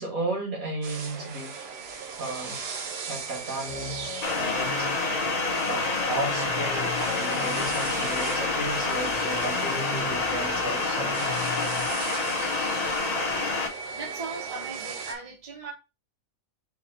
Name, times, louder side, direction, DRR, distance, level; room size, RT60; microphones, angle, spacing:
voice 1, 0.0-1.5 2.2-2.6 3.1-4.0 4.4-5.3 5.7-11.3, right 2 dB, 80° right, 2.2 m, -34 dB
sound 1, 0.8-15.1, right 4 dB, 55° right, 0.9 m, -37 dB
sound 2, 3.7-11.9, left 2 dB, 75° left, 1.3 m, -39 dB
sound 3, 4.2-13.7, left 3 dB, 35° left, 0.8 m, -28 dB
voice 2, 13.9-15.7, right 3 dB, 30° right, 1.0 m, -38 dB
4.1 x 2.9 x 4.2 m
omnidirectional pair, 1.4 m